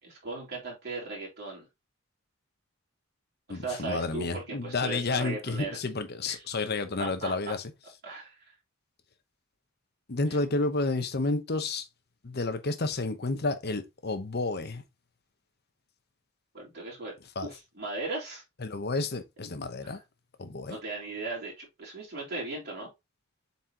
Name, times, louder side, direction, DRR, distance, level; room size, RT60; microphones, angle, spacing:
voice 1, 0.0-1.7 3.5-5.8 6.2-6.4 7.0-7.5 8.0-8.5 10.3-10.4 16.5-17.1 17.4-18.4 19.8-20.0 20.7-22.9, right 3 dB, 55° right, 3.5 m, -37 dB
voice 2, 3.5-7.6 10.1-11.9 12.2-14.8 17.4-17.5 18.6-20.0 20.4-20.8, left 3 dB, 55° left, 0.9 m, -30 dB
7.6 x 4.2 x 2.9 m
head